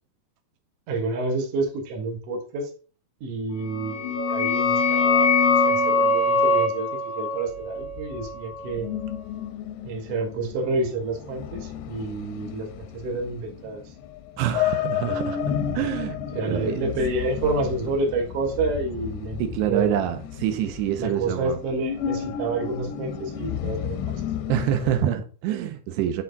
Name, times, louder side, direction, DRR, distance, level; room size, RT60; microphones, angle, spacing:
voice 1, 0.9-2.7 3.2-8.9 9.8-13.9 16.3-19.4 19.6-20.1 21.0-24.2, right 3 dB, 55° right, 1.7 m, -29 dB
sound 1, 3.7-9.1, left 3 dB, 55° left, 1.3 m, -23 dB
sound 2, 7.5-25.0, left 9 dB, 85° left, 2.6 m, -33 dB
voice 2, 14.4-16.8 19.4-21.6 24.5-26.2, right 10 dB, 80° right, 2.9 m, -26 dB
8.4 x 4.4 x 4.0 m
omnidirectional pair, 4.9 m